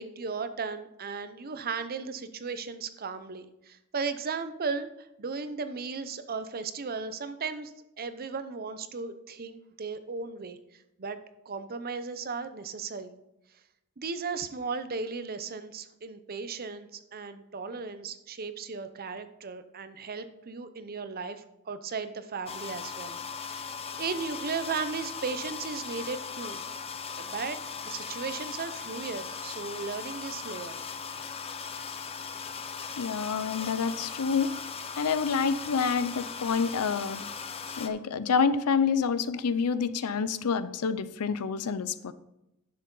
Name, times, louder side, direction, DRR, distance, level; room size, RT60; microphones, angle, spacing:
voice 1, 0.0-10.6 11.0-11.2 11.5-13.1 14.0-23.6 24.0-26.6 27.2-30.8, right 5 dB, 45° right, 11 dB, 0.7 m, -36 dB
sound 1, 22.5-37.9, left 6 dB, 25° left, 0.6 m, -38 dB
voice 2, 33.0-34.5 35.0-37.2 37.8-42.1, left 5 dB, 90° left, 14 dB, 0.6 m, -28 dB
11.0 x 6.7 x 3.9 m, 0.89 s
head